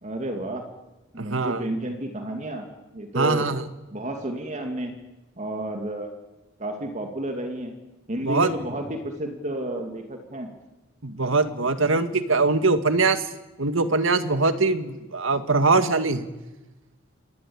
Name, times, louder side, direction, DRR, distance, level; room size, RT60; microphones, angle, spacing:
voice 1, 0.0-0.7 1.1-2.7 2.9-3.5 3.9-5.0 5.4-6.1 6.6-7.8 8.1-10.5, right 1 dB, 40° right, 4 dB, 2.5 m, -31 dB
voice 2, 1.2-1.6 3.1-3.7 8.2-8.5 11.0-13.3 13.6-16.3, right 3 dB, 85° right, 10 dB, 1.9 m, -22 dB
27.5 x 20.5 x 8.8 m, 1.1 s
head